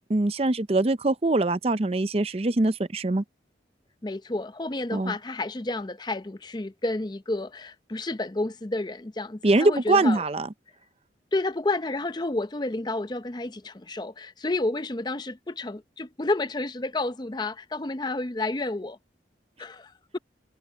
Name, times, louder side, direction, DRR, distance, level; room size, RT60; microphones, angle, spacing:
voice 1, 0.1-3.2 4.9-5.1 9.4-10.5, right 2 dB, 35° right, 0.6 m, -23 dB
voice 2, 4.0-10.2 11.3-19.0 19.6-20.2, left 2 dB, 25° left, 0.6 m, -30 dB
head